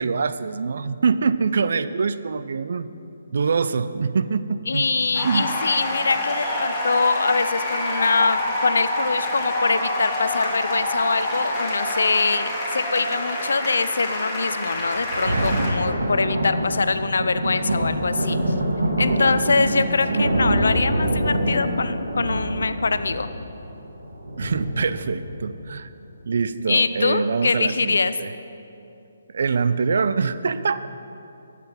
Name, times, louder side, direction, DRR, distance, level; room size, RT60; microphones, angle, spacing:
voice 1, 0.0-2.9 3.3-4.9 5.2-5.5 19.5-20.3 24.4-25.9 26.3-28.3 29.3-30.9, right 5 dB, 60° right, 13 dB, 0.4 m, -24 dB
voice 2, 4.7-18.4 19.0-23.3 26.7-28.1, left 4 dB, 70° left, 12 dB, 0.5 m, -23 dB
sound 1, 5.1-15.7, left 1 dB, 15° left, 1.9 m, -27 dB
Thunder, 14.8-25.8 26.4-26.5, right 1 dB, 75° right, 1.9 m, -25 dB
11.5 x 7.5 x 6.0 m, 2.7 s
figure-of-eight pair, 140°, 0 cm